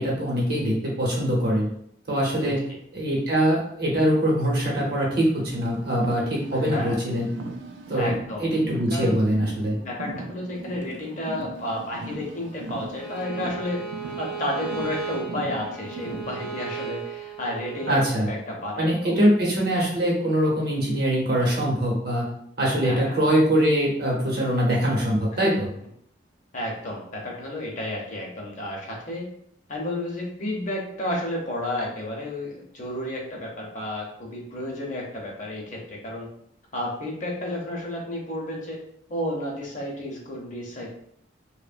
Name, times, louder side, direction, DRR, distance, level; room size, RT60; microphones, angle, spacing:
voice 1, 0.0-1.7 2.1-2.6 2.9-7.3 7.9-8.1 8.4-9.8 17.9-18.3 18.8-22.3 22.6-25.7, equal, 55° right, -3 dB, 0.8 m, -23 dB
Car, 5.4-16.5, right 2 dB, 75° right, 0.4 m, -39 dB
voice 2, 6.5-7.0 7.9-8.5 8.9-9.2 9.8-13.8 14.2-19.2 22.7-23.1 25.3-25.4 26.5-29.3 29.7-36.3 36.7-38.8 39.1-40.9, left 1 dB, 40° left, -1 dB, 0.6 m, -32 dB
Bowed string instrument, 13.0-18.0, right 6 dB, ahead, 0.3 m, -36 dB
2.9 x 2.1 x 2.4 m, 0.68 s
head